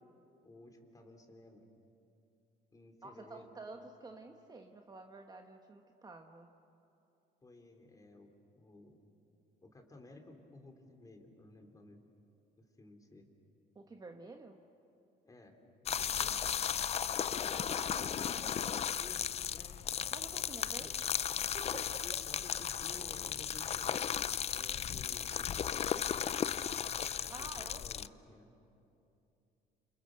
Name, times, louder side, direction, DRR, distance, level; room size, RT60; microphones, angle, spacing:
voice 1, 0.4-1.7 2.7-3.6 7.4-9.0 9.6-12.0 12.6-13.3 15.3-15.6 15.8-16.5 19.0-19.8 20.8-20.9 22.0-26.6 27.2-28.5, left 2 dB, 20° left, 3 dB, 3.6 m, -56 dB
voice 2, 3.0-6.5 13.7-14.6 16.2-16.3 17.4-18.9 20.1-20.9 21.5-22.2 27.3-27.8, right 3 dB, 25° right, 4 dB, 1.3 m, -50 dB
sound 1, 15.9-28.1, left 9 dB, 40° left, 0.5 m, -35 dB
29.5 x 28.0 x 6.6 m, 2.7 s
cardioid pair, 110°, 17 cm